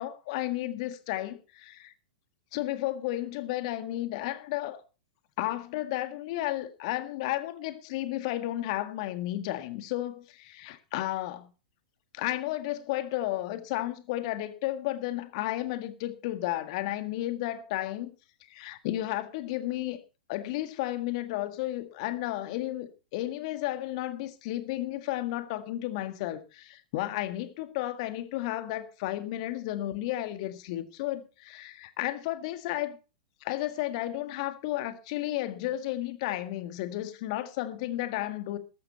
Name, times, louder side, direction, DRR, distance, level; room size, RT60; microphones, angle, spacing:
voice 1, 0.0-1.9 2.5-4.8 5.4-11.5 12.1-18.1 18.5-20.0 20.3-33.0 33.4-38.6, left 15 dB, 50° left, 1.8 m, -33 dB
13.5 x 12.5 x 4.3 m
figure-of-eight pair, 105°, 4 cm